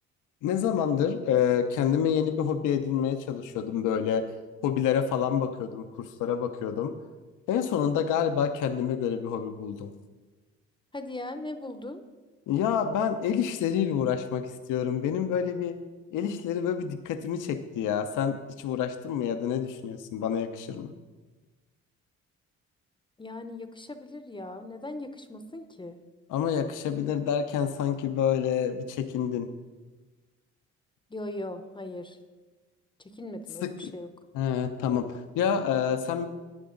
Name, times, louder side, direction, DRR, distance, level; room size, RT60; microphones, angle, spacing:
voice 1, 0.4-4.2 4.6-6.9 7.5-9.9 12.5-15.8 16.1-20.9 26.3-29.5 33.6-33.9 34.3-36.3, left 8 dB, 85° left, 7 dB, 0.7 m, -28 dB
voice 2, 10.9-12.0 23.2-26.0 31.1-32.2 33.0-34.1, left 2 dB, 15° left, 9 dB, 0.7 m, -39 dB
11.0 x 9.3 x 3.8 m, 1.3 s
cardioid pair, 90°, 30 cm